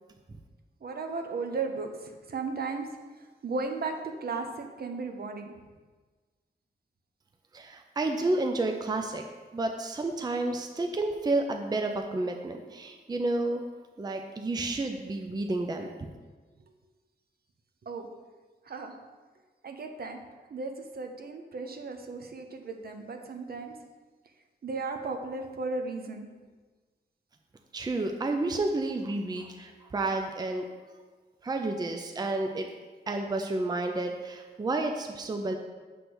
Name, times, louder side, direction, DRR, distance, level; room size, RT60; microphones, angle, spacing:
voice 1, 0.8-2.9 3.1-5.5 17.8-18.1 18.6-18.9 19.6-20.2 20.5-23.7 24.6-26.3, right 4 dB, 60° right, 5 dB, 0.8 m, -35 dB
voice 2, 7.5-9.2 9.5-13.6 14.0-16.1 27.7-30.7 31.4-32.7 33.1-35.6, right 2 dB, 20° right, 4 dB, 0.5 m, -30 dB
7.9 x 3.3 x 6.0 m, 1.4 s
wide cardioid pair, 130°, 18 cm